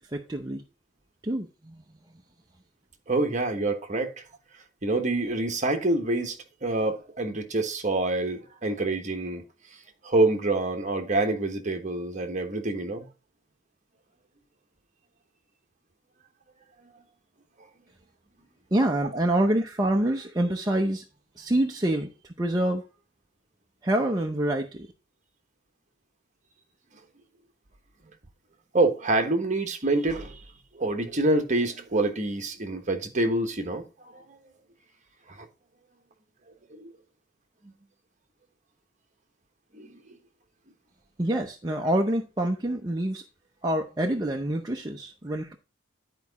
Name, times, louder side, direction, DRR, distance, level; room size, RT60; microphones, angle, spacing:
voice 1, 0.1-0.6 1.2-1.8 18.7-21.0 21.4-22.8 23.8-24.9 41.2-43.2 43.6-45.5, right 1 dB, 20° right, 0.7 m, -26 dB
voice 2, 3.1-4.2 4.8-9.4 10.0-13.1 28.7-30.4 30.7-34.4 35.3-35.5 36.7-36.9 37.6-37.7 39.7-40.2, right 2 dB, 40° right, 1.2 m, -27 dB
10.5 x 4.8 x 4.0 m
head